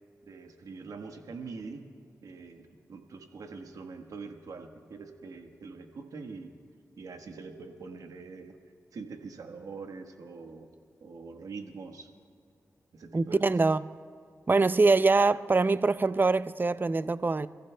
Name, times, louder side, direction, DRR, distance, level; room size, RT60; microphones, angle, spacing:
voice 1, 0.2-1.8 2.2-6.5 7.0-8.6 8.9-10.7 11.0-12.1 12.9-13.4, right 4 dB, 80° right, 1.4 m, -44 dB
voice 2, 13.1-13.8 14.5-17.5, right 3 dB, 35° right, 0.5 m, -24 dB
29.5 x 15.0 x 2.3 m
cardioid pair, 40°, 6 cm